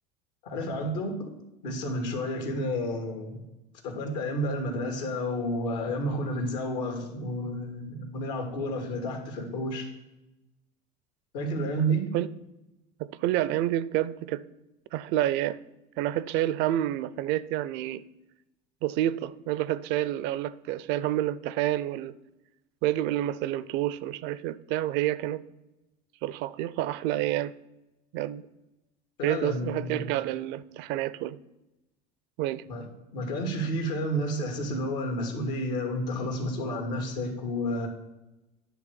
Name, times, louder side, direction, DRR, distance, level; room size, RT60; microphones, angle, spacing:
voice 1, 0.4-1.3 1.6-3.4 3.8-9.9 11.3-12.1 29.2-30.0 32.7-37.9, equal, 80° left, 3 dB, 2.0 m, -31 dB
voice 2, 13.0-14.4 14.9-15.6 16.0-18.0 18.8-22.1 22.8-25.4 26.2-27.5 28.1-28.5 29.2-31.4 32.4-32.6, right 13 dB, 60° right, 17 dB, 0.5 m, -28 dB
10.0 x 3.5 x 6.4 m, 0.97 s
supercardioid pair, 100°, 21 cm